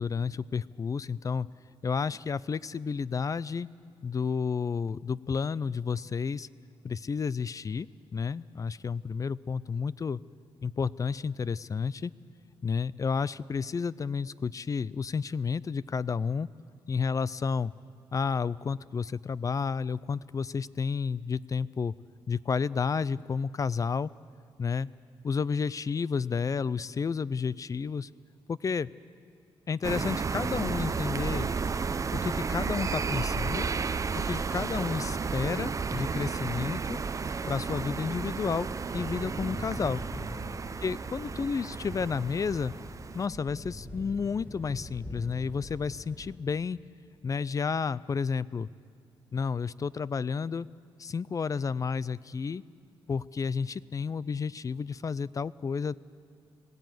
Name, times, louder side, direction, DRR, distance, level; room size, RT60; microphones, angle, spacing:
voice 1, 0.0-1.5 1.8-3.7 4.0-6.5 6.8-10.2 10.6-12.1 12.6-16.5 16.9-17.7 18.1-21.9 22.3-24.1 24.6-24.9 25.2-28.1 28.5-28.9 29.7-31.5 32.1-33.7 34.2-37.0 37.5-40.0 40.8-42.7 43.1-46.8 47.2-48.7 49.3-50.7 51.0-52.6 53.1-56.0, left 5 dB, 35° left, 19 dB, 0.4 m, -31 dB
sound 1, 29.8-43.3, right 5 dB, 35° right, 0.6 m, -32 dB
Thunder / Rain, 38.9-46.4, equal, 15° left, 2.4 m, -43 dB
20.0 x 16.0 x 9.3 m, 2.1 s
cardioid pair, 90°, 10 cm